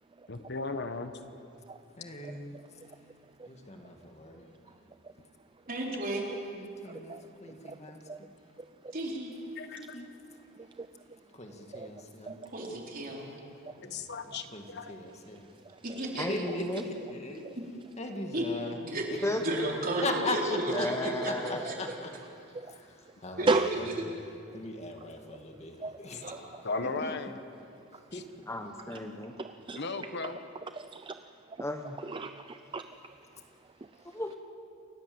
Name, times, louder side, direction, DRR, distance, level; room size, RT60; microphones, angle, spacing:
voice 1, 0.3-1.1 6.3-6.4 6.9-7.0 9.5-9.8 13.8-14.9 26.6-27.3 28.1-28.2 29.7-30.4, left 3 dB, 55° left, 8 dB, 1.2 m, -36 dB
voice 2, 2.0-2.6 3.5-4.7 6.5-8.0 9.8-10.1 11.3-12.3 13.8-15.5 16.3-17.5 18.0-18.8 20.0-22.1 22.4-24.0 24.5-27.1 28.1-28.3, left 2 dB, 35° left, 3 dB, 2.1 m, -40 dB
voice 3, 5.7-6.2 8.9-9.3 12.3-13.2 15.8-16.3 18.3-18.4 18.8-20.4 20.8-21.3 21.7-21.8 23.4-23.9 26.2-26.3, right 2 dB, 45° right, -1 dB, 4.1 m, -33 dB
voice 4, 16.2-16.8 19.2-19.4 20.7-21.6 28.5-29.3 31.6-32.0 34.0-34.3, left 1 dB, 15° left, 4 dB, 1.3 m, -34 dB
voice 5, 30.8-31.1 32.1-32.8, right 3 dB, 25° right, 9 dB, 0.5 m, -30 dB
28.5 x 17.0 x 7.9 m, 2.6 s
head